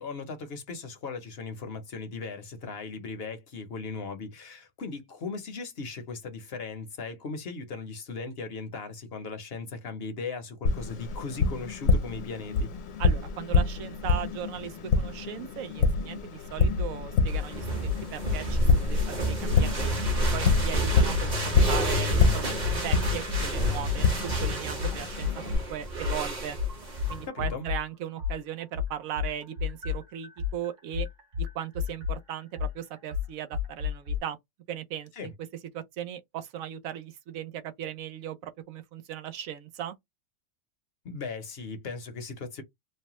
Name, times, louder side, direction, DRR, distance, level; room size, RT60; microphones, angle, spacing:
voice 1, 0.0-12.7 27.3-27.7 35.2-35.3 41.0-42.6, left 4 dB, 55° left, 0.8 m, -38 dB
Tap, 10.7-25.6, left 4 dB, 80° left, 1.1 m, -27 dB
voice 2, 13.0-26.6 27.1-31.1 31.4-34.4 34.7-35.3 35.7-40.0, right 10 dB, 90° right, 1.0 m, -38 dB
sound 1, 16.7-16.9 17.3-17.5 17.8-19.1 19.5-19.6 20.0-21.3 21.6-21.8 22.2-23.5 23.8-27.8 28.2-34.2, left 8 dB, 65° right, 1.5 m, -31 dB
sound 2, 17.3-27.3, right 1 dB, 40° right, 0.9 m, -30 dB
3.1 x 2.1 x 2.9 m
omnidirectional pair, 1.4 m